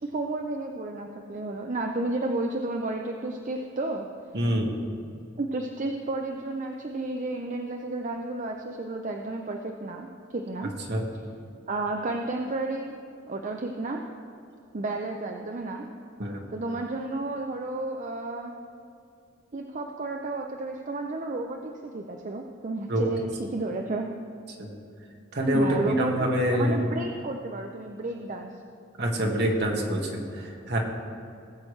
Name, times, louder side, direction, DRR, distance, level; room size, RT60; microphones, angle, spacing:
voice 1, 0.0-4.1 5.4-10.7 11.7-12.9 13.2-14.0 14.7-15.8 16.5-18.5 19.5-24.1 25.5-28.5, right 2 dB, 40° right, 2 dB, 0.6 m, -32 dB
voice 2, 4.3-4.7 10.9-11.0 16.2-16.4 22.9-23.1 24.6-24.7 25.3-26.9 29.0-30.8, equal, 55° right, 0 dB, 1.7 m, -26 dB
18.5 x 8.0 x 3.2 m, 2.5 s
head